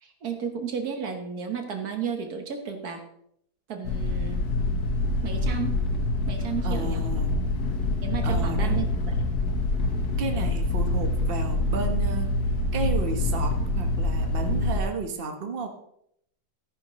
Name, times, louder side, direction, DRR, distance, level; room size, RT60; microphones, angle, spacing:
voice 1, 0.0-3.0 3.7-4.4 5.2-5.8 6.3-7.1 8.0-9.1, right 7 dB, 70° right, 5 dB, 1.7 m, -33 dB
sound 1, 3.8-14.8, left 2 dB, 70° left, 1.6 m, -26 dB
voice 2, 6.6-7.4 8.2-8.9 10.2-12.3 12.7-15.7, right 4 dB, 35° right, 4 dB, 1.4 m, -32 dB
13.5 x 10.5 x 3.1 m, 0.72 s
omnidirectional pair, 1.7 m